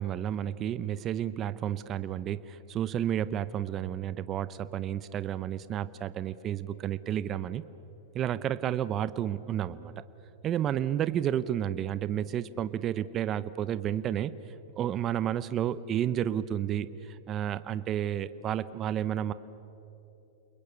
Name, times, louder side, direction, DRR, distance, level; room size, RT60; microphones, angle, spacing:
voice 1, 0.0-7.6 8.1-9.9 10.4-14.3 14.8-19.3, right 10 dB, 35° right, 15 dB, 0.7 m, -31 dB
29.0 x 21.5 x 8.5 m, 2.9 s
hypercardioid pair, 125°, 0 cm